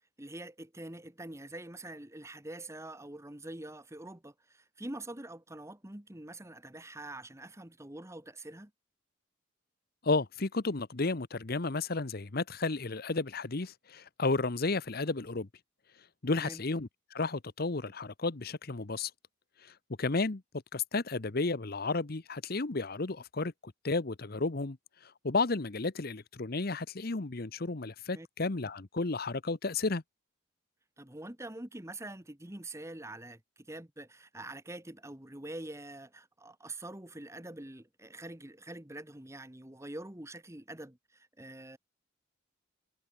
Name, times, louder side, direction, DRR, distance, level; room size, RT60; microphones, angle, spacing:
voice 1, 0.2-8.7 16.3-16.6 28.1-28.3 31.0-41.8, right 1 dB, 15° right, 1.4 m, -45 dB
voice 2, 10.0-15.5 16.2-19.1 19.6-20.4 20.7-24.8 25.0-30.0, left 3 dB, 50° left, 0.9 m, -32 dB
head